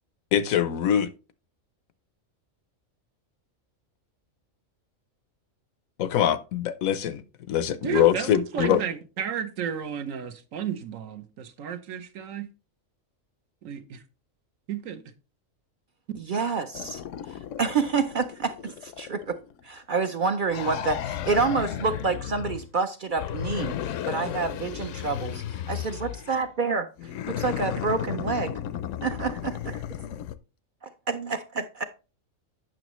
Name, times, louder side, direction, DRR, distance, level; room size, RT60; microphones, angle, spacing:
voice 1, 0.3-1.1 6.0-7.2 7.5-8.8, left 10 dB, 90° left, 1.2 m, -23 dB
voice 2, 7.8-12.5 13.6-14.0 14.7-15.0, right 8 dB, 75° right, 1.2 m, -32 dB
voice 3, 16.2-17.0 17.6-19.4 19.6-26.9 27.3-28.5 29.0-29.8 31.1-31.8, right 4 dB, 55° right, 0.6 m, -28 dB
sound 1, 16.7-19.6 20.5-22.7 23.1-26.4 27.0-30.4, left 10 dB, 70° left, 0.9 m, -34 dB
9.1 x 6.2 x 3.0 m
omnidirectional pair, 1.4 m